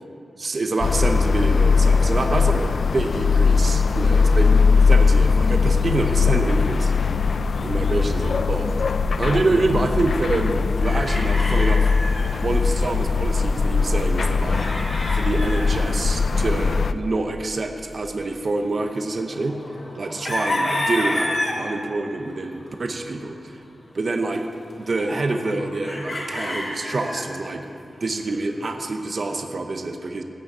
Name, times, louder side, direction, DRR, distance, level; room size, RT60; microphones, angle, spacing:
voice 1, 0.4-4.4 4.8-6.9 7.6-8.7 9.2-11.9 12.4-14.7 15.1-19.6 19.9-23.6 23.9-24.5 24.8-27.6 28.0-30.2, right 2 dB, 45° right, 5 dB, 0.9 m, -26 dB
sound 1, 0.8-16.9, left 5 dB, 60° left, 0.4 m, -20 dB
sound 2, 9.5-12.3 12.6-12.7 12.9-15.8 16.6-16.7 18.7-21.6 22.3-23.1 24.3-24.4 24.7-27.3 28.7-29.4, left 1 dB, 40° left, 2.9 m, -30 dB
16.0 x 6.3 x 8.0 m, 2.7 s
wide cardioid pair, 135°, 0 cm